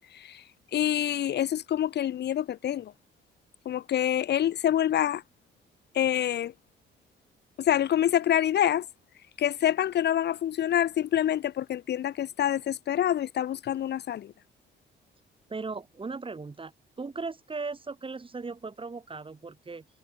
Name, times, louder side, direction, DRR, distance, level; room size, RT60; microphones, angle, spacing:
voice 1, 0.1-0.4 0.7-2.9 3.7-5.2 5.9-6.5 7.6-8.9 9.4-14.3, left 11 dB, 60° left, 0.7 m, -26 dB
voice 2, 15.5-16.7 17.0-19.9, right 4 dB, 25° right, 2.9 m, -37 dB
cardioid pair, 90°, 20 cm